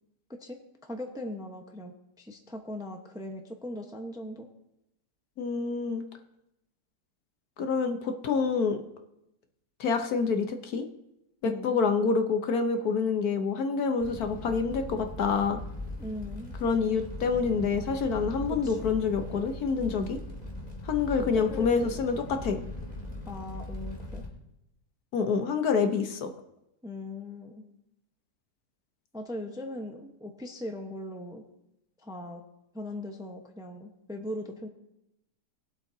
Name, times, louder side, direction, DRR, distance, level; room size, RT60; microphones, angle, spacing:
voice 1, 0.3-4.5 11.4-11.8 16.0-16.5 18.5-18.9 21.3-22.0 23.3-24.2 26.8-27.7 29.1-31.4 32.0-32.4 32.7-34.7, left 1 dB, 5° right, 3 dB, 0.8 m, -39 dB
voice 2, 5.4-6.0 7.6-8.8 9.8-10.9 11.4-15.6 16.6-20.2 20.8-22.6 25.1-26.3, left 5 dB, 65° left, 6 dB, 1.4 m, -27 dB
Fire, 14.0-24.3, left 1 dB, 25° left, 2.3 m, -40 dB
21.0 x 7.9 x 2.8 m, 0.87 s
omnidirectional pair, 1.8 m